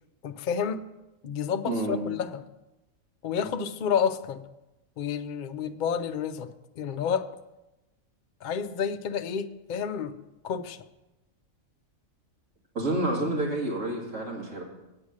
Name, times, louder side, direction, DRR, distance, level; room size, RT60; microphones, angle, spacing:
voice 1, 0.2-0.8 1.2-2.4 3.2-4.4 5.0-7.3 8.4-10.2 10.4-10.8, left 7 dB, 60° left, 0.5 m, -30 dB
voice 2, 1.7-2.0 12.7-14.6, right 1 dB, 60° right, 2.5 m, -29 dB
8.8 x 8.4 x 6.3 m
omnidirectional pair, 1.4 m